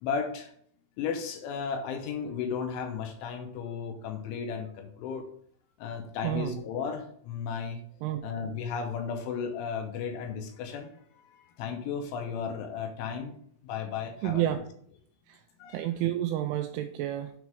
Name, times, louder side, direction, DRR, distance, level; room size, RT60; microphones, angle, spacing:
voice 1, 0.0-0.5 1.0-5.3 5.8-7.8 8.2-10.9 11.3-13.3 13.6-14.6 15.6-15.9, left 6 dB, 75° left, 5 dB, 3.0 m, -34 dB
voice 2, 6.2-6.6 8.0-8.2 14.2-14.6 15.3-15.4 15.7-17.3, right 12 dB, 85° right, 7 dB, 2.7 m, -30 dB
8.1 x 4.2 x 6.1 m, 0.63 s
omnidirectional pair, 6.0 m